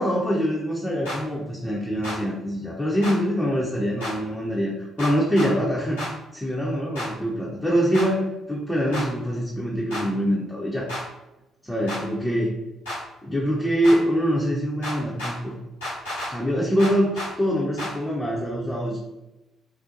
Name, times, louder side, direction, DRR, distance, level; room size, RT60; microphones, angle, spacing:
voice 1, 0.0-6.0 6.3-10.9 11.6-12.5 13.2-15.6 16.3-19.0, equal, 5° left, -4 dB, 0.5 m, -24 dB
sound 1, 1.0-1.2 2.0-2.2 3.0-3.2 4.0-4.1 5.0-5.5 6.0-6.1 6.9-7.1 7.9-8.1 8.9-9.1 9.9-10.0 10.9-11.0 11.9-12.0 12.8-13.0 13.8-14.0 14.8-15.3 15.8-16.3 16.8-17.3 17.8-17.9, left 1 dB, 85° left, 1.0 m, -31 dB
2.5 x 2.1 x 2.7 m, 0.97 s
figure-of-eight pair, 45°, 0 cm